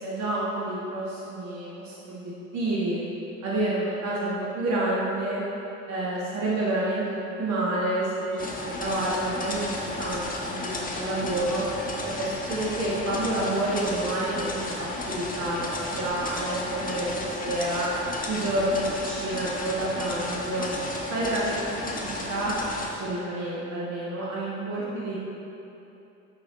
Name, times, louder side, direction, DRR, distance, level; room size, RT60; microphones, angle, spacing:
voice 1, 0.0-3.0 3.4-5.4 5.9-11.6 12.0-17.9 18.3-20.7 21.1-22.5 22.9-25.1, right 1 dB, 50° right, -6 dB, 1.6 m, -29 dB
sound 1, 8.4-22.9, left 2 dB, 25° left, 1.4 m, -33 dB
10.5 x 6.4 x 4.0 m, 2.9 s
figure-of-eight pair, 55°, 36 cm